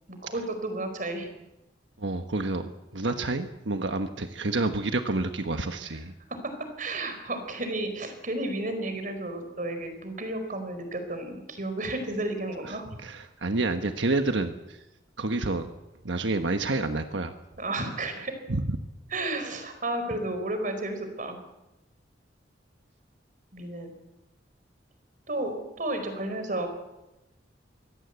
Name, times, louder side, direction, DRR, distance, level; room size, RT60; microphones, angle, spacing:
voice 1, 0.1-1.3 5.8-6.0 6.4-6.5 6.8-13.0 17.6-18.3 19.1-21.4 23.5-23.9 25.3-26.7, right 2 dB, 45° right, 7 dB, 4.7 m, -32 dB
voice 2, 2.0-6.1 12.7-14.8 15.2-15.7 16.0-17.3 18.5-18.8, right 2 dB, 90° right, 7 dB, 1.3 m, -29 dB
24.0 x 17.5 x 8.2 m, 0.97 s
head